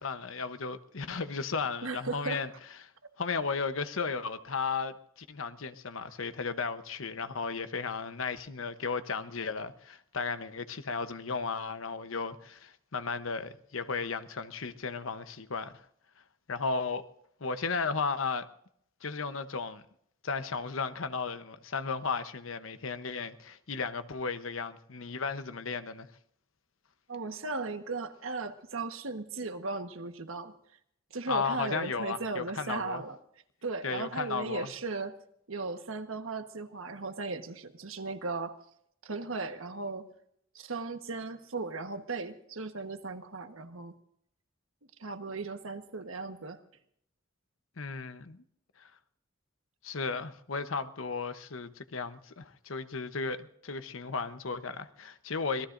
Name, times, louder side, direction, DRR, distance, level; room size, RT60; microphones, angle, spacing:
voice 1, 0.0-2.5 3.2-15.8 16.5-17.0 17.4-18.5 19.0-19.8 20.2-26.1 31.3-33.0 33.8-34.7 47.8-48.4 48.8-48.9 49.8-55.7, left 4 dB, 85° left, 0.9 m, -35 dB
voice 2, 1.8-2.4 27.1-30.5 31.1-33.2 33.6-35.1 35.5-38.5 39.0-40.1 40.5-44.0 45.0-46.6, right 3 dB, 90° right, 1.3 m, -37 dB
26.0 x 19.0 x 2.6 m
head